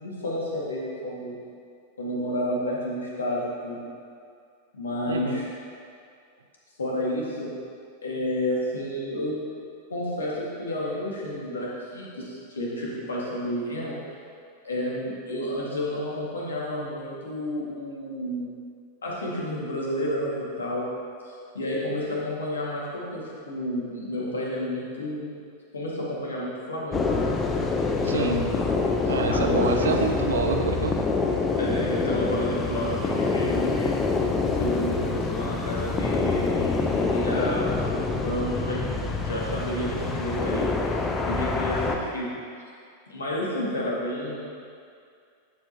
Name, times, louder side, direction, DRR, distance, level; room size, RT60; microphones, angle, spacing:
voice 1, 0.0-1.4 2.0-3.9 4.7-5.4 6.8-7.5 8.0-9.4 9.9-14.0 14.6-18.5 19.0-20.9 21.2-25.3 25.7-27.3 28.0-28.7 29.0-29.9 31.6-34.0 34.6-38.8 39.2-42.3 43.1-44.4, equal, 70° left, -5 dB, 2.0 m, -30 dB
voice 2, 5.1-5.4 28.0-28.4 29.1-31.1, right 5 dB, 65° right, 5 dB, 0.5 m, -27 dB
sound 1, 26.9-42.0, left 4 dB, 20° left, 0.8 m, -26 dB
11.5 x 7.5 x 2.9 m, 2.3 s
figure-of-eight pair, 90°, 0 cm